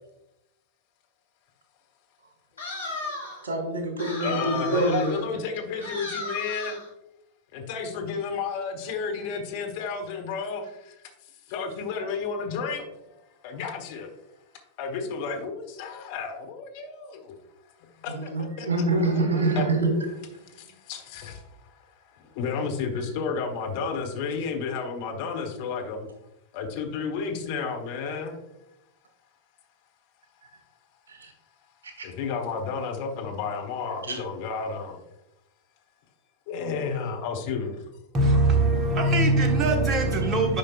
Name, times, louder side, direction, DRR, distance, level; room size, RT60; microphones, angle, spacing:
sound 1, 2.6-3.5 4.0-5.2 5.8-6.9, left 2 dB, 80° left, 2.0 m, -35 dB
voice 1, 3.4-5.4 18.1-20.4 31.1-31.3 32.0-32.1 34.1-34.2, right 2 dB, 65° right, 1.6 m, -26 dB
voice 2, 4.2-6.8 7.5-10.7 11.5-12.9 13.4-14.1 14.8-17.3 18.0-19.0 19.6-19.7 20.9-21.4 22.3-26.1 26.5-28.4 32.0-35.0 36.5-37.8, left 5 dB, 50° left, 1.2 m, -32 dB
voice 3, 38.1-40.6, right 2 dB, 30° right, 1.2 m, -21 dB
9.6 x 5.2 x 2.4 m
figure-of-eight pair, 90°, 0 cm